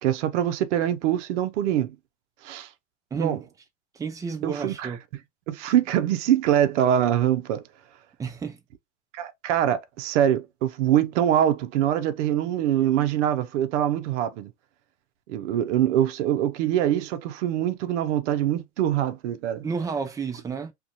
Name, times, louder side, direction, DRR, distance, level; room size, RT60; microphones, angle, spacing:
voice 1, 0.0-2.0 2.4-2.7 3.2-3.4 4.4-4.9 5.5-7.6 9.1-14.5 15.3-19.7, right 11 dB, 70° right, 0.6 m, -24 dB
voice 2, 3.1-3.4 3.9-5.0 8.2-8.6 19.6-20.7, right 5 dB, 10° right, 0.3 m, -31 dB
2.4 x 2.2 x 2.7 m
hypercardioid pair, 100°, 36 cm